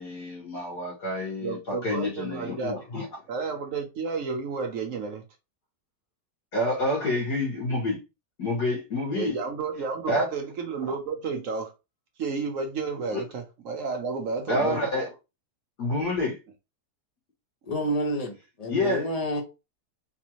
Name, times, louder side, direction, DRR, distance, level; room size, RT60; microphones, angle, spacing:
voice 1, 0.0-3.0 6.5-8.0 8.4-9.3 10.1-10.2 10.8-10.9 13.1-13.2 14.5-15.1 15.8-16.4 18.7-19.0, left 1 dB, 80° left, 2.2 m, -28 dB
voice 2, 1.4-2.8 3.3-5.2 9.1-11.7 12.2-14.8, right 4 dB, 65° right, 0.9 m, -31 dB
voice 3, 17.6-19.4, equal, 30° left, 0.9 m, -29 dB
4.1 x 2.6 x 2.9 m
omnidirectional pair, 1.7 m